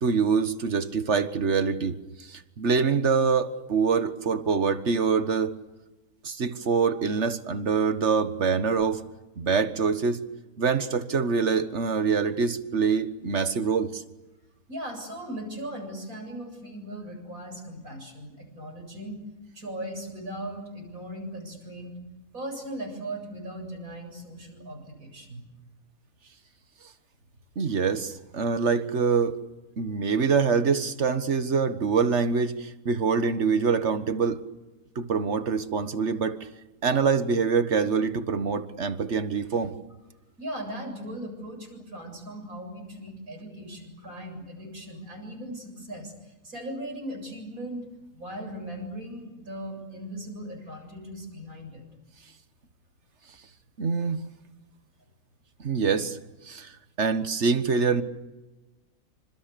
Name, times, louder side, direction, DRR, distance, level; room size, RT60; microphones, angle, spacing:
voice 1, 0.0-5.5 6.2-9.0 9.4-10.2 10.6-14.0 27.6-29.4 29.8-34.4 35.0-36.5 36.8-39.7 53.8-54.2 55.6-56.2 56.4-56.7 57.0-58.0, right 5 dB, 55° right, 10 dB, 1.7 m, -25 dB
voice 2, 14.7-19.2 19.5-21.9 22.3-25.5 40.4-47.9 48.1-51.8, right 1 dB, 80° right, 4 dB, 8.1 m, -38 dB
28.0 x 27.0 x 6.9 m, 1.1 s
omnidirectional pair, 1.5 m